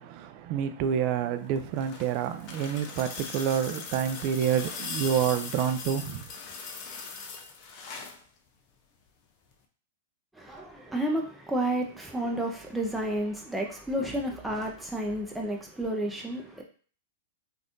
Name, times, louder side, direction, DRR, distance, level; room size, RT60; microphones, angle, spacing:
voice 1, 0.0-6.2, right 8 dB, 45° right, 0.3 m, -28 dB
sound 1, 1.4-8.2 9.5-9.6, left 5 dB, 40° left, 0.6 m, -40 dB
voice 2, 10.4-16.6, right 1 dB, 5° right, 0.6 m, -31 dB
3.3 x 2.5 x 2.6 m
hypercardioid pair, 110°, 0 cm